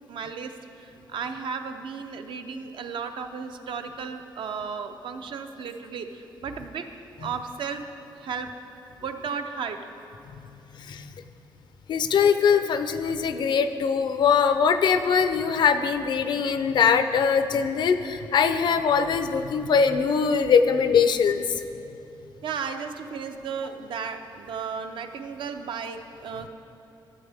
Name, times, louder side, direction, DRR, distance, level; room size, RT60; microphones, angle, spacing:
voice 1, 0.1-6.9 7.2-7.8 8.1-8.5 9.0-9.8 22.4-26.5, right 6 dB, 70° right, 7 dB, 0.6 m, -34 dB
voice 2, 10.8-11.1 11.9-21.6, left 6 dB, 60° left, 10 dB, 0.4 m, -22 dB
13.0 x 8.0 x 3.4 m, 2.9 s
wide cardioid pair, 155°, 9 cm